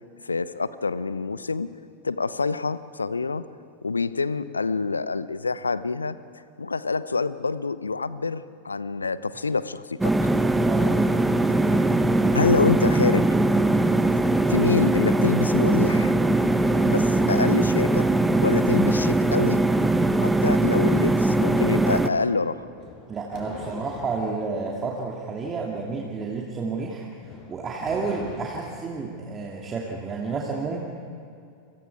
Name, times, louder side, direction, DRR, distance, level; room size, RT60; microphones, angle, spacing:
voice 1, 0.2-1.7 2.0-3.4 3.8-6.2 6.6-10.1 11.7-11.9 12.3-13.3 14.5-16.1 16.8-18.1 18.4-19.6 20.2-22.6, left 4 dB, 75° left, 16 dB, 0.8 m, -26 dB
sound 1, 10.0-22.1, right 2 dB, 5° right, 1.2 m, -21 dB
voice 2, 10.7-11.1 23.1-30.8, right 4 dB, 20° right, -2 dB, 2.5 m, -31 dB
sound 2, 16.6-17.8 22.7-24.3 27.2-28.9, left 3 dB, 35° left, 5.5 m, -42 dB
30.0 x 25.5 x 4.8 m, 2.5 s
figure-of-eight pair, 90°, 0 cm